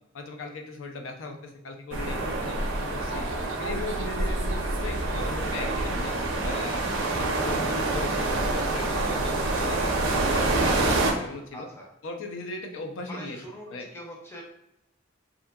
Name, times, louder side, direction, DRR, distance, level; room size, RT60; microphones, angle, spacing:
voice 1, 0.1-3.3 3.6-6.1 6.4-11.7 12.0-13.9, left 2 dB, 70° left, 3 dB, 0.5 m, -38 dB
sound 1, 1.9-11.1, right 2 dB, 80° right, 0.5 m, -27 dB
voice 2, 11.5-11.9 13.1-14.4, equal, 10° left, -3 dB, 0.6 m, -43 dB
2.7 x 2.4 x 2.2 m, 0.82 s
head